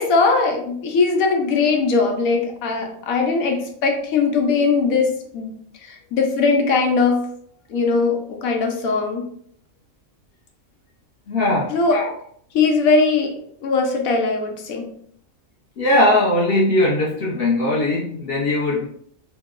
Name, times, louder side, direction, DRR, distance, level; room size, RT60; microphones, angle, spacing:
voice 1, 0.0-5.5 5.8-7.3 7.7-9.3 11.7-12.1 12.5-13.3 13.6-14.8, left 4 dB, 90° left, 3 dB, 1.1 m, -20 dB
voice 2, 11.3-11.8 15.8-18.9, left 1 dB, 60° left, -3 dB, 0.6 m, -19 dB
3.0 x 2.0 x 3.5 m, 0.65 s
omnidirectional pair, 1.4 m